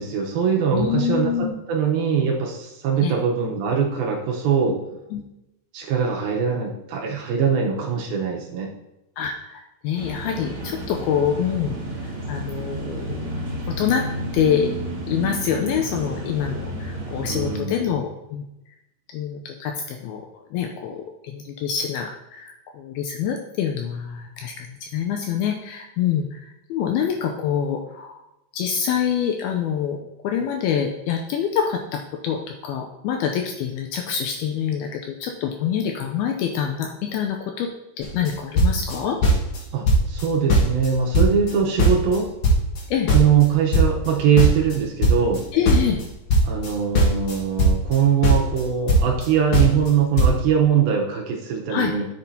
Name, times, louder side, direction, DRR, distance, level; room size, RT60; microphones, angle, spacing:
voice 1, 0.0-4.8 5.7-8.7 17.3-17.8 39.7-42.3 43.1-45.4 46.4-52.1, right 7 dB, 75° right, 0 dB, 2.4 m, -22 dB
voice 2, 0.7-1.6 3.0-3.1 4.7-4.8 5.1-5.2 9.2-11.8 12.0-13.3 13.8-14.0 14.3-14.7 15.1-18.4 19.1-20.2 20.5-28.2 28.5-30.0 30.2-37.7 38.0-39.2 41.2-41.3 42.9-43.1 45.5-46.0 51.7-51.9, left 8 dB, 85° left, 3 dB, 2.3 m, -26 dB
sound 1, 9.9-17.6, right 1 dB, 45° right, 1.7 m, -31 dB
sound 2, 38.0-38.3 38.6-39.6 39.9-40.2 40.5-42.2 42.4-45.4 45.7-48.0 48.2-49.3 49.5-49.9 50.2-50.3, right 1 dB, 60° left, 2.7 m, -18 dB
11.5 x 7.2 x 2.8 m, 0.92 s
omnidirectional pair, 4.9 m